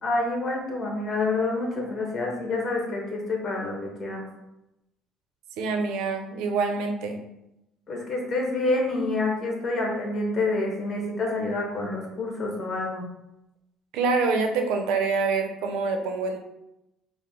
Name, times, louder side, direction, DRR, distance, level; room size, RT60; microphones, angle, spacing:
voice 1, 0.0-4.2 7.9-13.1, left 2 dB, 35° left, 0 dB, 1.1 m, -28 dB
voice 2, 5.6-7.2 13.9-16.4, right 4 dB, 80° right, 4 dB, 0.6 m, -26 dB
4.7 x 2.1 x 3.6 m, 0.89 s
cardioid pair, 125°, 0 cm